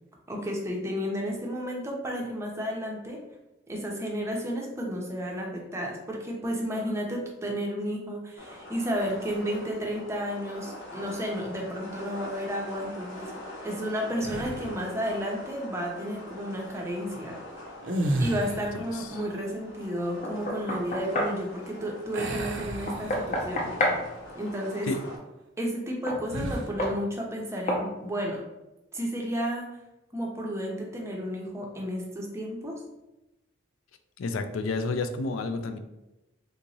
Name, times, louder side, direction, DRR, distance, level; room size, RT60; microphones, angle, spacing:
voice 1, 0.3-3.2 3.7-13.4 13.6-17.4 18.2-23.7 24.3-24.9 25.6-28.4 28.9-29.7 30.1-32.8, equal, 15° right, -1 dB, 0.5 m, -32 dB
sound 1, 8.4-25.2, left 1 dB, 70° left, 0.8 m, -44 dB
sound 2, 14.2-14.9 17.8-18.9 22.1-23.6 24.0-24.2 26.3-26.8, right 1 dB, 65° right, 0.5 m, -32 dB
Knock, 20.2-21.4 22.9-24.0 26.1-26.2 26.8-27.0 27.7-27.9, left 1 dB, 35° left, 0.5 m, -29 dB
voice 2, 34.2-35.8, left 3 dB, 85° left, 8 dB, 0.4 m, -30 dB
3.5 x 2.9 x 2.7 m, 0.97 s
head